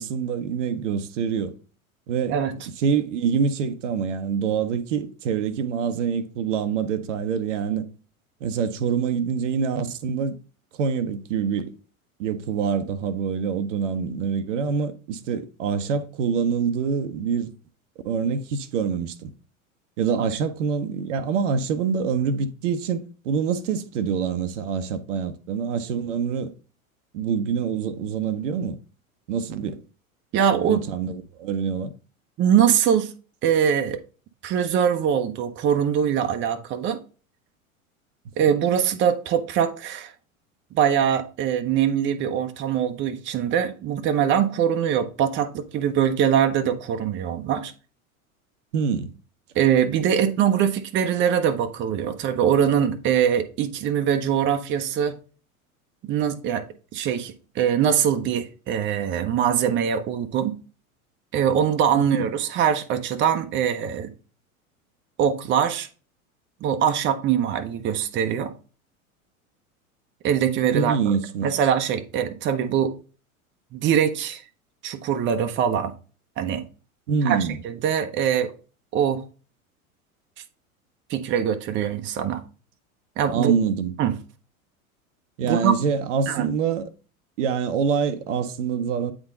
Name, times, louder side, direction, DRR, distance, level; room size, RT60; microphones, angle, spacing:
voice 1, 0.0-1.5 2.1-2.4 2.8-7.9 8.4-10.3 10.7-11.7 12.2-17.5 18.0-19.3 20.0-26.5 27.1-28.8 29.3-29.7 30.6-31.9 48.7-49.1 61.9-62.3 70.7-71.5 77.1-77.6 83.3-83.9 85.4-86.8 87.4-89.1, right 6 dB, 55° right, 0.8 m, -25 dB
voice 2, 30.3-30.8 32.4-33.1 33.4-34.0 34.4-37.0 38.4-40.1 40.7-47.7 49.5-55.2 56.0-56.6 56.9-60.6 61.3-64.1 65.2-65.9 66.6-68.5 70.2-71.0 71.4-72.9 73.7-74.4 74.8-75.9 76.4-76.6 77.2-77.4 77.6-78.5 78.9-79.2 81.1-82.4 83.2-83.5 84.0-84.1 85.4-85.7 86.3-86.5, right 8 dB, 25° right, 0.7 m, -22 dB
8.7 x 3.7 x 3.7 m
figure-of-eight pair, 85°, 43 cm